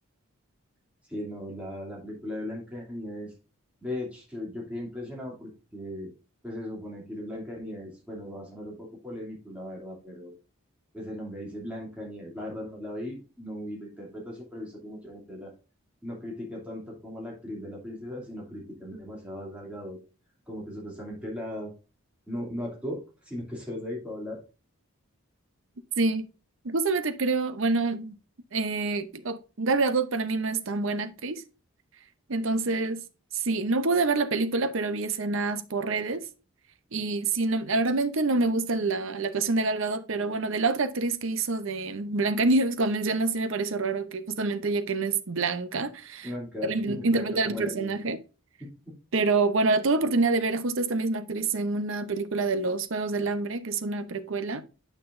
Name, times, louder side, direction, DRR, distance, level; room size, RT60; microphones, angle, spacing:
voice 1, 1.1-3.3 3.8-6.1 6.4-10.3 10.9-15.5 16.0-20.0 20.5-21.7 22.3-23.0 23.3-24.4 46.2-48.0 48.6-48.7, left 1 dB, 5° right, 2.7 m, -37 dB
voice 2, 26.6-28.2 28.5-31.4 32.3-33.0 33.3-36.2 36.9-46.3 46.6-48.2 49.1-54.6, right 3 dB, 65° right, 0.7 m, -27 dB
8.8 x 5.9 x 2.6 m
head